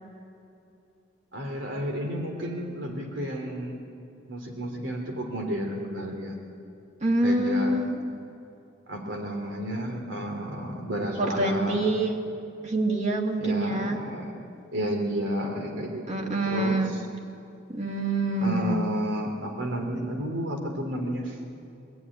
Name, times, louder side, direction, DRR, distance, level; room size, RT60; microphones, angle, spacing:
voice 1, 1.3-3.8 4.3-6.4 7.2-7.8 8.9-12.0 13.4-14.4 14.7-17.0 18.4-21.3, equal, 85° right, 2 dB, 3.1 m, -31 dB
voice 2, 7.0-7.9 11.2-12.2 12.6-14.0 16.1-17.0 17.7-18.8, right 1 dB, 40° right, 2 dB, 2.3 m, -26 dB
24.0 x 14.0 x 9.8 m, 2.7 s
head